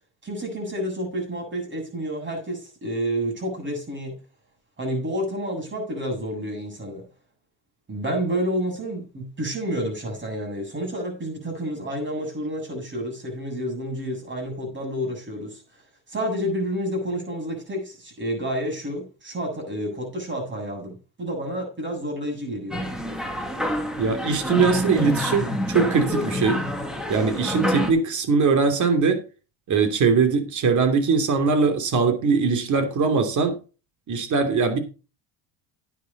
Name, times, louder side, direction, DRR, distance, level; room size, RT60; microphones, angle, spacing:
voice 1, 0.2-4.2 4.8-7.1 7.9-15.8 16.1-22.8, equal, 30° right, 7.6 m, -29 dB
sound 1, 22.7-27.9, left 1 dB, ahead, 2.2 m, -27 dB
voice 2, 24.0-26.6 27.1-29.2 29.7-33.6 34.1-34.8, right 5 dB, 45° right, 2.9 m, -21 dB
10.5 x 9.9 x 4.1 m
cardioid pair, 110°, 40 cm